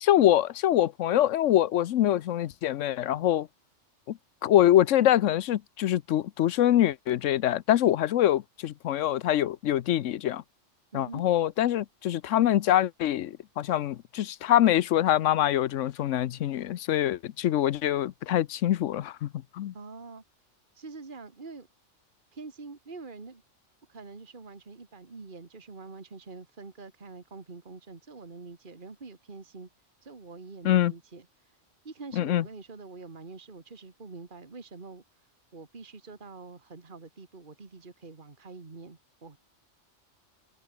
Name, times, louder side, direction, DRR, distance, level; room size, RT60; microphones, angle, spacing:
voice 1, 0.0-3.5 4.1-10.4 10.9-19.7 30.6-30.9 32.1-32.4, left 12 dB, 90° left, 1.0 m, -24 dB
voice 2, 10.9-11.2 19.7-20.2 20.8-21.7 22.3-23.4 23.9-29.7 30.0-31.3 31.8-35.0 35.5-39.4, right 4 dB, 45° right, 2.1 m, -45 dB
omnidirectional pair, 1.2 m